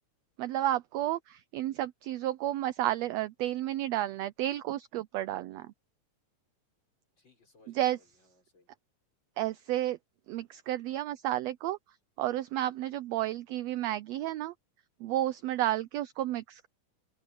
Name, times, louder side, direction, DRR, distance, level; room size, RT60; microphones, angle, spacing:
voice 1, 0.4-5.7 7.7-8.0 9.4-10.0 10.3-11.8 12.2-14.5 15.0-16.7, right 14 dB, 85° right, 1.5 m, -31 dB
voice 2, 7.2-8.7 12.7-13.0 15.4-15.7, left 3 dB, 35° left, 7.1 m, -65 dB
open air
omnidirectional pair, 3.6 m